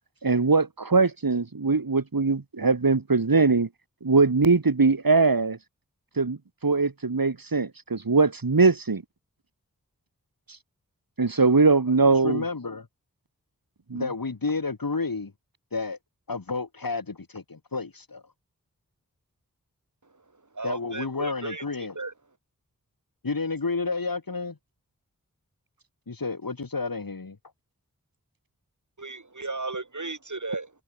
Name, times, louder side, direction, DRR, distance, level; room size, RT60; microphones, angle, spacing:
voice 1, 0.2-3.7 4.0-5.6 6.2-6.4 6.6-9.0 11.2-12.4 13.9-14.1, right 4 dB, 80° right, 5.0 m, -21 dB
voice 2, 12.2-12.9 13.9-15.3 15.7-16.0 16.3-18.2 20.6-22.0 23.2-24.6 26.1-27.4, left 4 dB, 80° left, 5.3 m, -31 dB
voice 3, 20.5-21.6 22.0-22.1 29.0-30.7, right 3 dB, 60° right, 4.5 m, -34 dB
wide cardioid pair, 55°, 34 cm